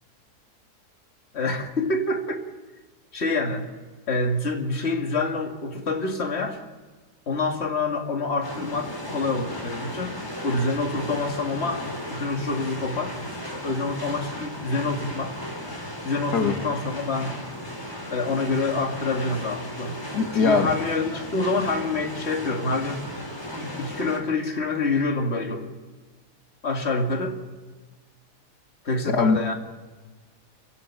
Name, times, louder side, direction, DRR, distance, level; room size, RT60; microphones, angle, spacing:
voice 1, 1.3-2.4 3.1-3.7 4.1-6.6 7.3-11.8 12.1-13.2 13.6-15.4 16.0-17.3 18.1-20.0 20.3-23.0 23.6-25.7 26.6-27.4 28.8-29.5, left 3 dB, 40° left, 2 dB, 2.4 m, -27 dB
sound 1, 8.4-24.2, equal, 15° left, 4.4 m, -35 dB
voice 2, 20.1-20.7 29.1-29.5, left 4 dB, 75° left, 4 dB, 2.4 m, -21 dB
28.0 x 16.0 x 9.0 m, 1.4 s
omnidirectional pair, 1.7 m